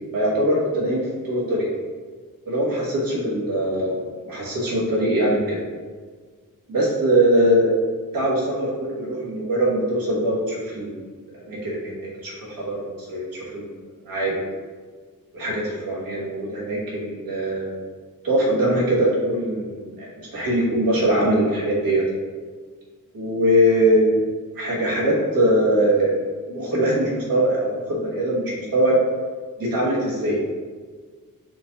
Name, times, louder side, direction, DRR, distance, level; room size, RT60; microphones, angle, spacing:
voice 1, 0.1-1.7 2.5-5.6 6.7-7.7 8.1-11.1 11.3-13.7 14.0-14.3 15.3-17.8 18.2-22.0 23.1-24.2 24.5-26.1 26.5-29.0 29.6-30.4, right 1 dB, 85° right, -5 dB, 1.3 m, -22 dB
4.5 x 2.5 x 3.9 m, 1.5 s
wide cardioid pair, 135°, 34 cm